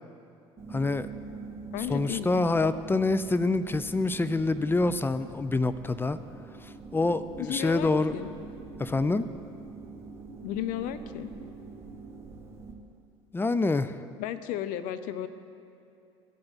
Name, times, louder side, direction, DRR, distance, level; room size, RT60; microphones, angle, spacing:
sound 1, 0.6-12.7, right 4 dB, 15° right, 1.5 m, -44 dB
voice 1, 0.7-1.1 1.9-6.2 6.9-8.1 8.8-9.3 13.3-13.9, left 3 dB, 15° left, 13 dB, 0.4 m, -26 dB
voice 2, 1.7-2.3 7.4-8.3 10.4-11.3 14.2-15.3, left 11 dB, 65° left, 11 dB, 0.6 m, -34 dB
16.0 x 5.4 x 4.0 m, 2.7 s
hypercardioid pair, 70°, 15 cm